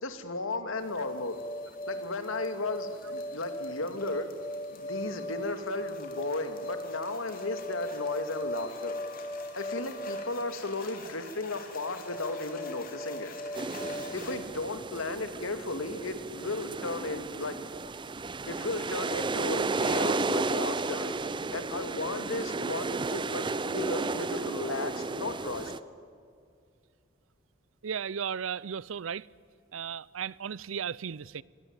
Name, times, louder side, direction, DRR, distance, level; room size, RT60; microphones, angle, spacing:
voice 1, 0.0-1.4 1.9-4.3 4.7-9.0 9.5-13.3 14.1-17.6 18.4-21.2 21.5-25.7, left 2 dB, 85° left, 2.3 m, -35 dB
sound 1, 0.8-14.4, left 1 dB, 45° left, 3.6 m, -39 dB
sound 2, 13.5-25.8, right 3 dB, 25° right, 0.5 m, -33 dB
voice 2, 27.8-29.3 29.7-31.4, right 7 dB, 75° right, 0.5 m, -35 dB
25.0 x 19.0 x 9.0 m
head